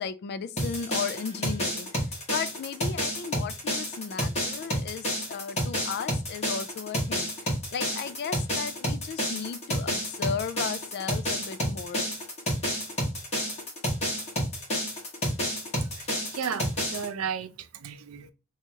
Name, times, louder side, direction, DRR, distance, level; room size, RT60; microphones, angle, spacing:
voice 1, 0.0-1.9 2.3-7.3 7.7-12.1, left 6 dB, 50° left, 0.3 m, -35 dB
sound 1, 0.6-17.1, equal, 30° left, 1.3 m, -30 dB
voice 2, 16.0-18.3, right 7 dB, 85° right, 0.5 m, -34 dB
2.9 x 2.4 x 4.3 m
head